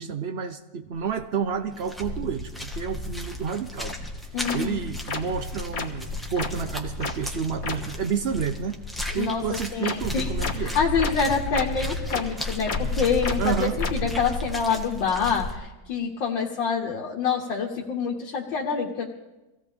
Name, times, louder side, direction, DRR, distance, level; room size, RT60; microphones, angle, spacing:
voice 1, 0.0-4.0 4.5-8.8 9.1-10.8 13.4-13.8, right 7 dB, 75° right, 8 dB, 0.5 m, -30 dB
sound 1, 1.0-1.2 1.5-15.6, left 2 dB, ahead, 1.3 m, -33 dB
sound 2, 3.9-4.0 4.5-4.6 5.1-5.2 5.7-5.9 6.4-6.5 7.0-7.1 7.6-7.7 9.8-9.9 10.4-10.5 11.0-11.1 11.5-11.6 12.1-12.2 12.7-12.8 13.2-13.3 13.8-13.9, left 5 dB, 50° left, 1.8 m, -29 dB
voice 2, 4.3-4.8 9.1-9.4 9.7-10.3 10.6-19.1, left 6 dB, 85° left, -2 dB, 2.1 m, -26 dB
24.5 x 16.5 x 3.5 m, 1.0 s
omnidirectional pair, 2.0 m